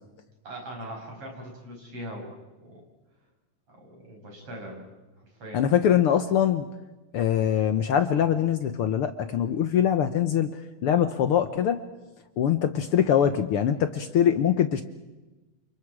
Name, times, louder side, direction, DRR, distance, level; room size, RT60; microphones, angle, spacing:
voice 1, 0.4-2.3 2.6-2.8 3.8-4.8 5.2-5.8, right 1 dB, 45° right, 1 dB, 6.7 m, -40 dB
voice 2, 5.5-6.7 7.1-10.5 10.8-11.8 12.4-14.8, left 9 dB, 70° left, 9 dB, 1.4 m, -23 dB
29.5 x 28.5 x 4.9 m, 1.1 s
omnidirectional pair, 3.5 m